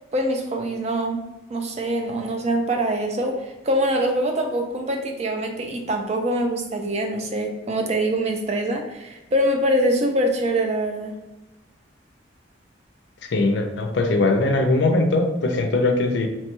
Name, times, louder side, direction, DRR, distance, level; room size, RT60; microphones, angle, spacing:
voice 1, 0.1-1.2 1.5-11.1, right 1 dB, 35° right, 3 dB, 0.4 m, -24 dB
voice 2, 13.2-16.3, left 2 dB, 70° left, 5 dB, 0.4 m, -20 dB
3.0 x 2.2 x 3.0 m, 1.0 s
head